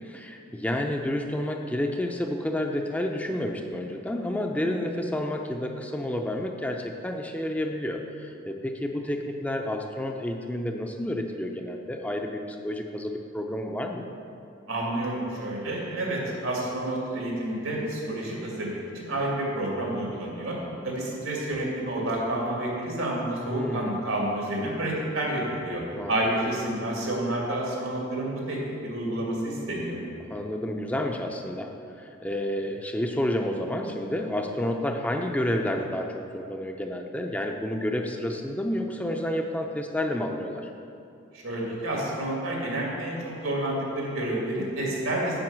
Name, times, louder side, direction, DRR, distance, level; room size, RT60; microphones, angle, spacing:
voice 1, 0.0-14.1 23.5-24.0 25.9-26.1 30.3-31.7 32.0-40.7, left 1 dB, 5° left, 3 dB, 0.4 m, -30 dB
voice 2, 14.7-20.6 20.8-25.8 26.1-30.0 41.3-45.4, right 1 dB, 90° right, -3 dB, 2.3 m, -29 dB
7.7 x 5.3 x 7.4 m, 2.6 s
head